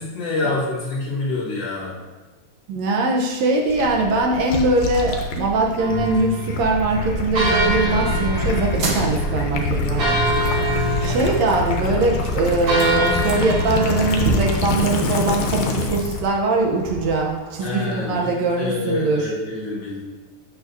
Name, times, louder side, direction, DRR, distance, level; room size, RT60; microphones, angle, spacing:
voice 1, 0.0-2.0 17.6-20.0, left 3 dB, 60° left, -5 dB, 2.2 m, -27 dB
voice 2, 2.7-10.2 10.5-10.6 11.0-19.3, right 3 dB, 70° right, 0 dB, 2.0 m, -21 dB
Gurgling / Liquid, 3.7-16.3, left 3 dB, 80° left, 2.1 m, -25 dB
sound 1, 5.8-14.4, right 1 dB, 40° right, 1.7 m, -26 dB
sound 2, 8.7-18.2, right 1 dB, 55° right, 1.8 m, -33 dB
8.5 x 6.7 x 2.7 m, 1.2 s
omnidirectional pair, 3.3 m